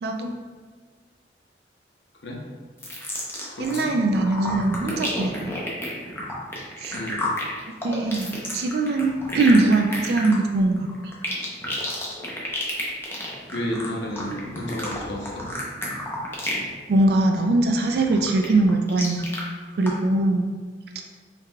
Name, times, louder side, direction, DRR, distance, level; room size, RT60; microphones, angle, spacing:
voice 1, 0.0-0.3 3.6-5.3 6.8-7.0 7.8-10.9 16.9-19.3 19.7-20.5, right 2 dB, 60° right, 3 dB, 0.3 m, -21 dB
sound 1, 2.8-3.9 4.1-16.7 17.0-17.4 17.8-19.4 19.9-20.0, left 1 dB, 15° left, 0.6 m, -31 dB
voice 2, 3.5-3.9 6.9-7.2 13.5-15.5, equal, 85° left, 0 dB, 0.7 m, -31 dB
4.7 x 3.5 x 2.2 m, 1.5 s
head